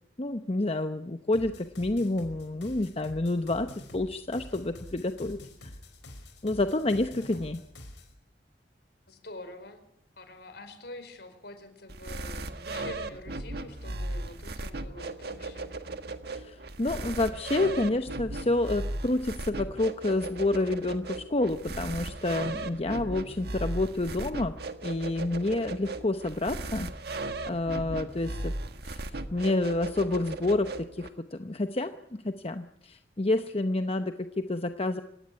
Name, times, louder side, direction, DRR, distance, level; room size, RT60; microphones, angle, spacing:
voice 1, 0.2-5.7 6.4-7.6 16.3-24.5 24.8-28.5 28.8-35.0, left 2 dB, 35° left, 8 dB, 0.9 m, -29 dB
sound 1, 1.3-8.1, left 1 dB, 90° left, 5.3 m, -46 dB
voice 2, 9.1-9.9 10.2-15.7, left 2 dB, 65° left, 9 dB, 4.5 m, -46 dB
sound 2, 11.9-31.1, right 2 dB, 65° right, 1.6 m, -37 dB
26.5 x 16.5 x 9.7 m, 0.79 s
head